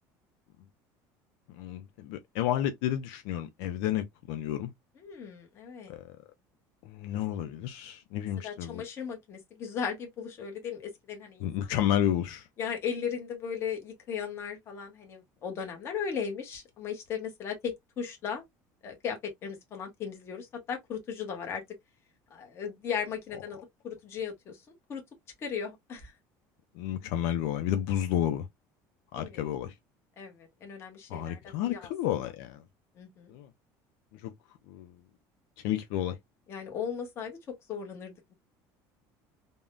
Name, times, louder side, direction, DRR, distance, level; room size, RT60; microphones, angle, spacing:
voice 1, 1.6-4.7 5.9-6.2 6.8-8.8 11.4-12.5 26.7-28.5 29.1-29.7 31.1-32.6 33.3-33.5 34.1-34.3 34.7-35.0 35.6-36.2, left 11 dB, 80° left, 0.5 m, -31 dB
voice 2, 5.0-5.9 8.4-11.5 12.6-18.4 18.8-21.6 22.3-24.6 24.9-25.0 25.4-26.1 29.2-29.5 30.2-31.9 33.0-33.3 36.5-38.3, left 7 dB, 30° left, 1.0 m, -37 dB
3.5 x 2.1 x 2.4 m
cardioid pair, 170°, 8 cm